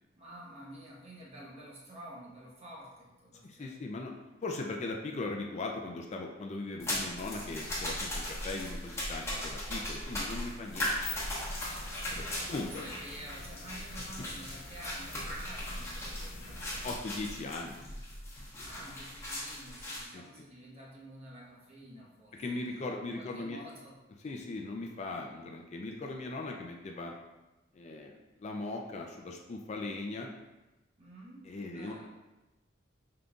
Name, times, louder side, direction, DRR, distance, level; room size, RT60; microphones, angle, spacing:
voice 1, 0.1-3.7 12.3-16.9 18.6-22.6 23.1-24.0 31.0-32.1, right 1 dB, 35° right, -4 dB, 1.0 m, -50 dB
voice 2, 3.4-4.1 4.4-10.9 11.2-11.3 12.1-12.8 16.8-17.8 20.1-20.2 22.3-23.6 24.2-27.1 27.7-28.1 28.4-30.3 31.4-32.0, left 2 dB, 35° left, 1 dB, 0.4 m, -39 dB
sound 1, 6.8-20.0, left 1 dB, 15° left, 1.1 m, -38 dB
sound 2, 10.8-17.0, left 5 dB, 85° left, 0.6 m, -48 dB
5.2 x 3.8 x 2.3 m, 1.1 s
head